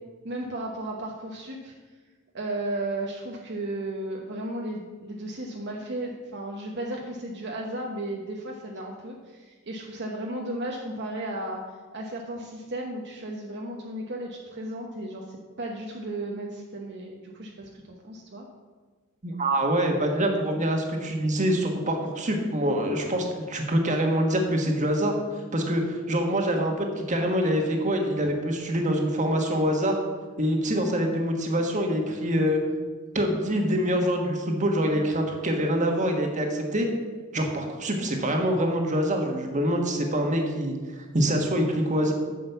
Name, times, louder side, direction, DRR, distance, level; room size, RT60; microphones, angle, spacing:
voice 1, 0.2-1.7 2.3-11.6 11.9-18.4, right 1 dB, 55° right, -1 dB, 1.1 m, -34 dB
voice 2, 19.2-25.1 25.5-30.0 30.4-32.6 33.1-36.9 37.3-42.1, equal, 35° right, 2 dB, 1.6 m, -25 dB
9.4 x 6.4 x 7.1 m, 1.4 s
head